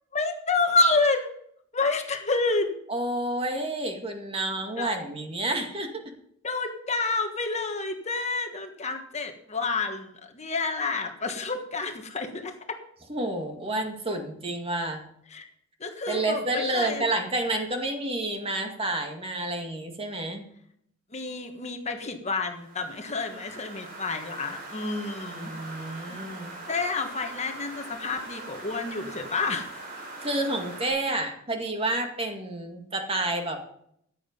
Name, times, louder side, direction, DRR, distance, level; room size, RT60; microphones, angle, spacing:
voice 1, 0.1-1.3 1.7-2.7 4.8-4.9 6.4-12.5 15.3-15.5 15.8-17.1 21.1-25.5 26.1-26.2 26.7-29.7, left 3 dB, 35° left, 5 dB, 1.4 m, -29 dB
voice 2, 2.9-6.0 13.1-15.0 16.1-20.5 25.3-26.6 30.2-33.6, right 1 dB, 30° right, 4 dB, 2.1 m, -29 dB
sound 1, 22.5-30.9, right 2 dB, 45° right, 4.4 m, -42 dB
14.5 x 9.8 x 5.3 m, 0.69 s
head